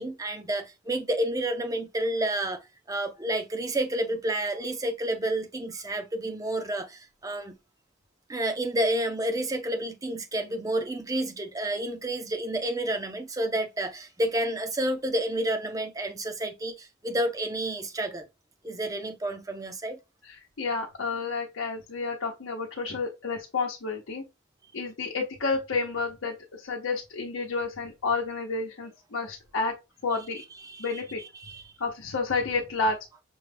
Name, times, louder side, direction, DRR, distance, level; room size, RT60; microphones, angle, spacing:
voice 1, 0.0-2.6 2.9-7.5 8.3-18.3 18.6-20.0 30.6-30.9 31.4-31.7, right 1 dB, 15° right, 0.5 m, -30 dB
voice 2, 20.2-24.2 24.7-29.7 30.0-30.4 30.8-31.2 31.8-33.0, left 4 dB, 85° left, 0.8 m, -30 dB
6.1 x 2.2 x 3.3 m
head